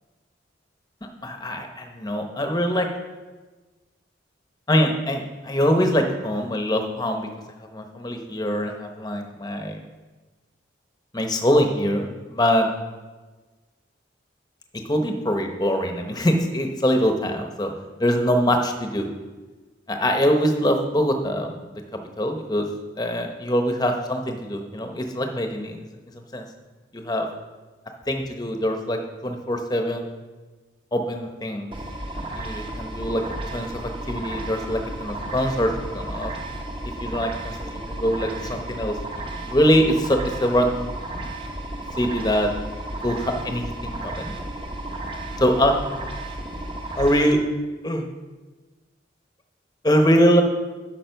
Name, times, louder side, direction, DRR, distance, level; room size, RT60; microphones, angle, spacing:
voice 1, 1.2-2.9 4.7-7.3 7.6-9.8 11.1-12.7 14.9-17.7 18.0-19.1 19.9-22.7 23.0-25.8 26.3-26.5 26.9-27.3 28.1-30.1 30.9-31.7 32.1-33.2 33.5-33.8 34.1-36.3 36.8-40.9 42.0-42.5 43.0-44.3 45.4-45.8 47.0-47.4 47.8-48.0 49.8-50.4, equal, 20° left, 4 dB, 0.8 m, -23 dB
sound 1, 31.7-47.3, right 1 dB, 25° right, 0.8 m, -33 dB
9.0 x 5.8 x 5.7 m, 1.3 s
head